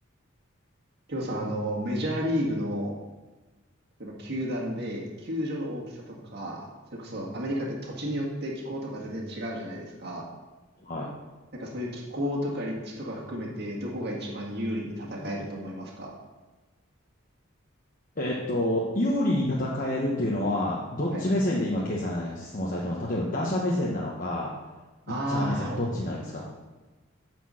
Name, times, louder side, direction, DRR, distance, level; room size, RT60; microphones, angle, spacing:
voice 1, 1.1-3.0 4.0-10.2 11.5-16.1 21.1-21.2 25.1-26.0, equal, 55° right, -3 dB, 1.8 m, -32 dB
voice 2, 18.2-24.5 25.3-26.5, left 1 dB, 40° left, -4 dB, 1.1 m, -28 dB
9.9 x 4.6 x 6.3 m, 1.2 s
head